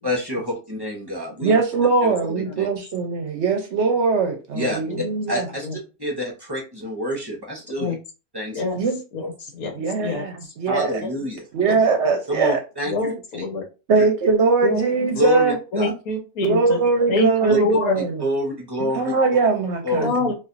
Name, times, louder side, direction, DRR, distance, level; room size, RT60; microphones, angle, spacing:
voice 1, 0.0-1.5 2.0-2.1 2.6-2.7 4.5-4.9 5.3-8.0 8.3-8.6 9.2-9.3 10.7-11.4 12.3-12.9 15.1-15.9 17.5-17.6 18.2-19.1 19.8-20.2, left 1 dB, 25° right, 0.5 m, -26 dB
voice 2, 1.4-5.5 8.7-9.0 9.7-11.0 11.5-12.6 13.9-15.6 16.4-18.2 18.9-20.1, right 4 dB, 60° right, 0.8 m, -21 dB
voice 3, 12.9-13.6 14.6-14.9 15.7-16.8 17.1-17.9 18.8-18.9 20.0-20.3, left 2 dB, 75° left, 1.4 m, -25 dB
4.1 x 2.5 x 2.5 m
omnidirectional pair, 1.5 m